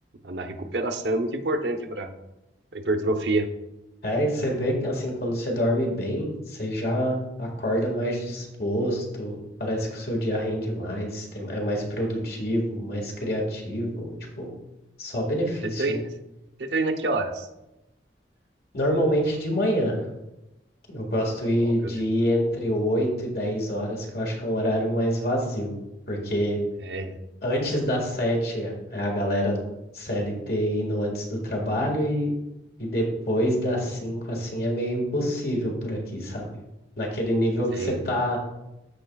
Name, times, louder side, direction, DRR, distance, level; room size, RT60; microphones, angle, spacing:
voice 1, 0.2-2.1 2.7-3.5 15.8-16.1 16.6-17.5 21.8-21.9 26.8-27.2 37.7-38.0, right 2 dB, 80° right, 5 dB, 0.8 m, -27 dB
voice 2, 4.0-14.5 15.0-16.0 18.7-20.1 20.9-25.7 26.1-26.6 27.4-29.6 29.9-32.3 32.8-36.5 37.0-38.5, equal, 60° left, 0 dB, 1.8 m, -26 dB
14.0 x 4.7 x 2.3 m, 0.93 s
head